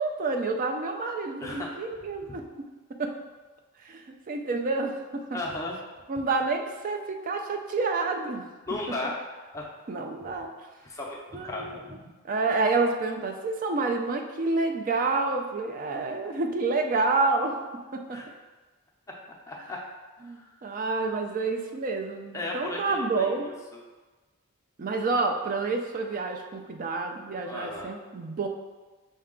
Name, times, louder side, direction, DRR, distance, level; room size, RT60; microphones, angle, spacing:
voice 1, 0.0-2.4 3.0-3.2 3.8-5.3 6.1-8.5 9.9-10.5 11.3-11.8 12.2-17.6 17.9-18.2 20.2-23.5 24.8-28.5, right 3 dB, 40° right, 4 dB, 0.4 m, -28 dB
voice 2, 1.4-1.9 2.3-2.4 5.3-5.8 8.7-9.2 9.5-9.7 10.8-12.1 18.1-18.3 19.1-19.2 19.5-19.8 20.2-20.5 22.3-23.8 27.4-27.9, left 2 dB, 15° left, -2 dB, 0.5 m, -36 dB
5.3 x 2.3 x 3.6 m, 1.2 s
head